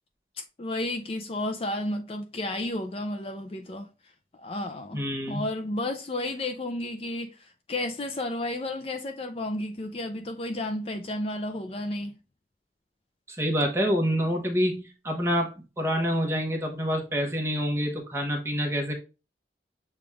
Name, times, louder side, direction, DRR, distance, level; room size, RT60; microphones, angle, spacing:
voice 1, 0.6-3.9 4.3-5.0 5.3-12.1, left 1 dB, 35° left, 0.4 m, -32 dB
voice 2, 4.9-5.4 13.3-18.9, equal, 15° right, 1.0 m, -27 dB
6.9 x 2.4 x 3.2 m
head